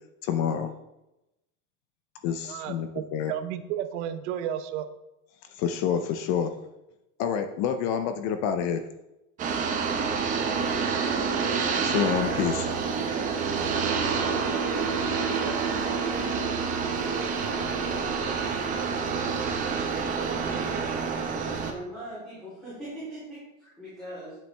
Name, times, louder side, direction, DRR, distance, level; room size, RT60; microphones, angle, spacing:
voice 1, 0.2-0.7 2.2-3.3 5.6-6.5 7.2-8.8 11.8-12.7, left 8 dB, 35° left, 8 dB, 0.5 m, -27 dB
voice 2, 2.4-4.9, right 10 dB, 60° right, 10 dB, 0.9 m, -33 dB
police chopper long, 9.4-21.7, right 5 dB, 20° right, 0.9 m, -28 dB
voice 3, 10.4-11.4 21.6-24.4, right 1 dB, ahead, -13 dB, 3.1 m, -41 dB
9.1 x 7.3 x 3.3 m, 0.92 s
supercardioid pair, 170°, 39 cm